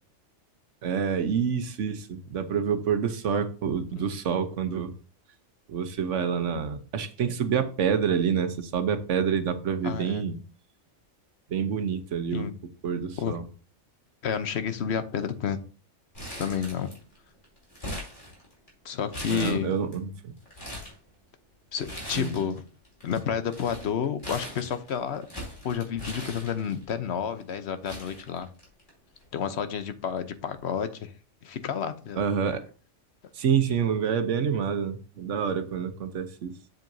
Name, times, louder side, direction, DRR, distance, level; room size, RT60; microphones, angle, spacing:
voice 1, 0.8-4.9 5.7-10.4 11.5-12.4 12.8-13.4 19.3-20.3 22.1-22.4 32.2-32.6 33.3-36.5, right 7 dB, 75° right, 9 dB, 1.2 m, -27 dB
voice 2, 9.8-10.2 12.3-12.5 13.2-13.4 14.2-15.6 16.4-16.9 18.8-19.8 21.7-22.6 23.0-25.3 25.6-28.5 29.3-31.1 31.4-32.2, left 7 dB, 60° left, 10 dB, 1.0 m, -30 dB
Crumpling crinkling, 16.1-17.2 17.4-18.7 19.1-19.9 20.4-21.0 21.8-22.6 22.8-26.9 27.5-27.6 27.8-28.9 29.2-29.3 30.3-30.5, equal, 40° left, 2.7 m, -40 dB
7.8 x 7.5 x 2.7 m, 0.38 s
omnidirectional pair, 1.3 m